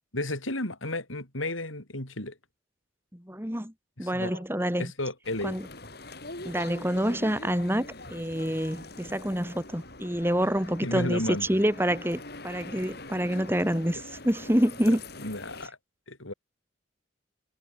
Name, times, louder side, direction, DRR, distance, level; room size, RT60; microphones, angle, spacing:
voice 1, 0.1-2.4 4.0-4.4 4.8-5.7 10.8-11.5 13.3-13.4 15.2-15.8 16.1-16.3, left 1 dB, 85° left, 7.4 m, -33 dB
voice 2, 3.1-3.7 4.0-4.9 5.4-5.7 6.4-15.0, equal, 10° right, 3.6 m, -27 dB
sound 1, 5.2-15.7, left 2 dB, 50° left, 4.5 m, -43 dB
head